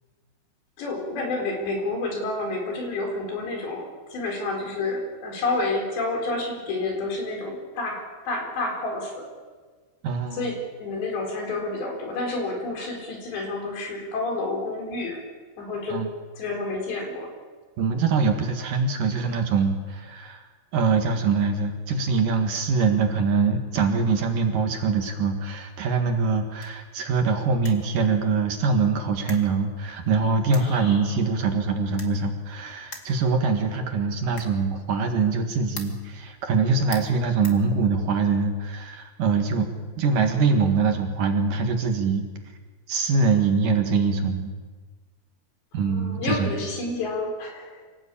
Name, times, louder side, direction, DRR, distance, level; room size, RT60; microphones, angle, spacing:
voice 1, 0.8-9.3 10.3-15.2 15.6-16.1 16.3-17.3 30.6-31.1 45.7-47.8, left 2 dB, 80° left, 2 dB, 6.7 m, -29 dB
voice 2, 10.0-10.4 15.9-16.1 17.8-20.5 20.7-39.7 40.0-42.3 42.9-44.5 45.7-46.5, right 4 dB, 60° right, 4 dB, 3.0 m, -23 dB
sound 1, 26.4-38.3, left 2 dB, 25° left, 1.7 m, -47 dB
26.0 x 17.5 x 8.6 m, 1.4 s
omnidirectional pair, 4.9 m